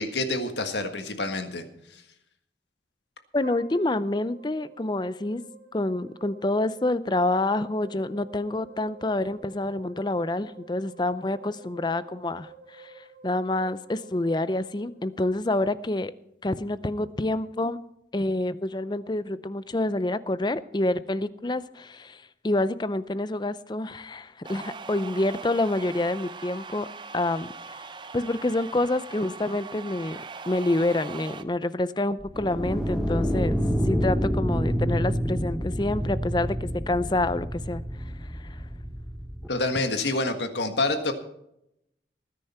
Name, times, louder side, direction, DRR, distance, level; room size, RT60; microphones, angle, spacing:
voice 1, 0.0-1.6 39.5-41.1, left 2 dB, 75° left, 7 dB, 1.7 m, -27 dB
voice 2, 3.3-5.4 5.7-16.1 16.4-17.8 18.1-26.9 27.1-27.5 28.1-33.6 33.8-37.8 38.2-38.6, left 2 dB, 25° left, 15 dB, 0.5 m, -27 dB
sound 1, 3.4-15.7, right 3 dB, 50° right, 2.2 m, -50 dB
sound 2, 24.4-31.4, right 4 dB, 25° right, 0.6 m, -41 dB
sound 3, 32.2-39.5, equal, ahead, 0.9 m, -28 dB
19.0 x 10.0 x 4.4 m, 0.81 s
head